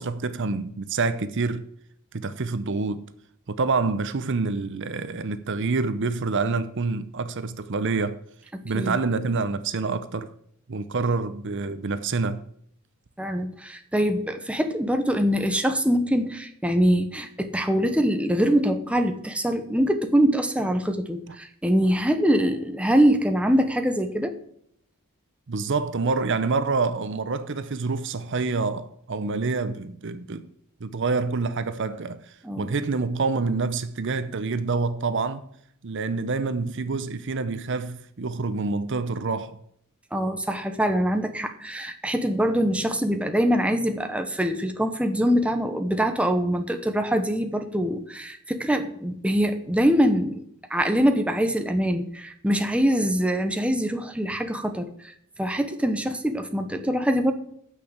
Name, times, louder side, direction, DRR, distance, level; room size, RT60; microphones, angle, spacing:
voice 1, 0.0-1.6 2.1-3.0 3.5-8.2 8.6-10.3 10.7-12.4 25.5-30.5 30.8-32.2 32.6-35.5 35.8-39.6, right 4 dB, 55° right, 0.7 m, -27 dB
voice 2, 8.5-9.0 13.2-24.4 32.4-32.7 40.1-50.4 50.7-55.1 55.4-57.3, equal, 5° right, 0.9 m, -24 dB
9.0 x 6.4 x 8.0 m
head